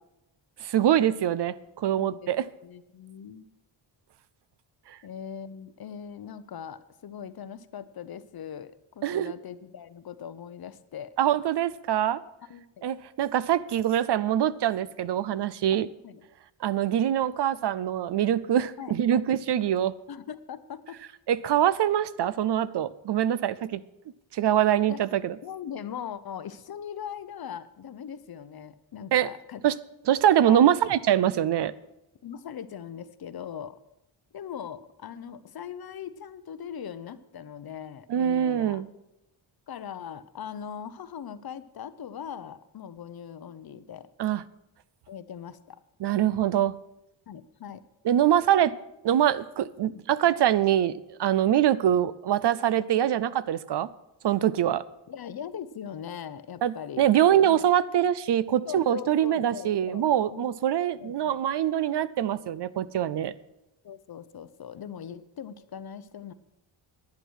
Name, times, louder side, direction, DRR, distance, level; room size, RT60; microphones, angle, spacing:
voice 1, 0.6-2.4 4.9-5.0 9.0-9.3 11.2-12.2 12.8-15.9 16.6-20.0 21.3-23.8 24.3-25.4 29.1-29.3 29.6-29.7 30.1-31.7 38.1-38.9 44.2-44.4 46.0-46.8 48.0-48.7 49.0-50.9 51.2-53.9 54.2-54.8 56.6-63.3, right 10 dB, 55° right, 17 dB, 0.6 m, -24 dB
voice 2, 1.9-2.3 2.6-3.5 5.0-11.1 12.5-12.9 15.7-16.2 18.8-19.2 20.1-21.0 24.9-25.0 25.4-29.6 30.4-30.6 32.2-33.8 34.3-38.8 39.7-44.1 45.1-45.8 47.3-47.8 49.8-50.0 51.5-51.8 55.1-57.1 57.4-57.6 58.6-60.0 60.3-60.5 61.0-61.4 63.8-66.3, left 8 dB, 50° left, 14 dB, 0.7 m, -40 dB
11.5 x 9.3 x 6.3 m, 0.88 s
wide cardioid pair, 130°, 49 cm